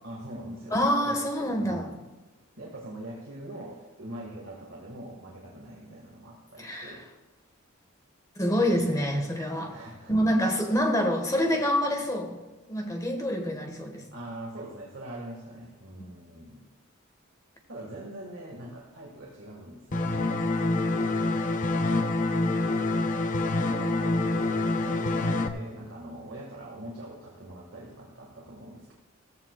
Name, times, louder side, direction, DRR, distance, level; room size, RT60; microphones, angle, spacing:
voice 1, 0.0-1.2 1.6-2.0 2.6-7.1 9.7-10.1 14.1-16.7 17.7-20.4 23.6-28.9, right 1 dB, 65° right, -3 dB, 2.1 m, -43 dB
voice 2, 0.7-1.9 6.6-7.0 8.4-9.7 10.1-12.4 12.7-14.0, equal, 15° left, 3 dB, 1.6 m, -26 dB
sound 1, 19.9-25.5, left 2 dB, 40° left, 0.8 m, -26 dB
16.0 x 14.5 x 2.4 m, 1.1 s
head